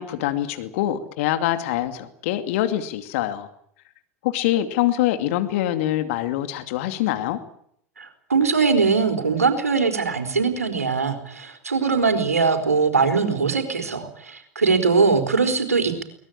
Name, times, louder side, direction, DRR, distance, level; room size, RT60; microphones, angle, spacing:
voice 1, 0.0-3.5 4.2-7.4, left 13 dB, 60° left, 9 dB, 2.5 m, -24 dB
voice 2, 8.0-16.0, right 4 dB, 85° right, 7 dB, 4.4 m, -21 dB
23.5 x 19.5 x 8.8 m, 0.68 s
figure-of-eight pair, 85°, 8 cm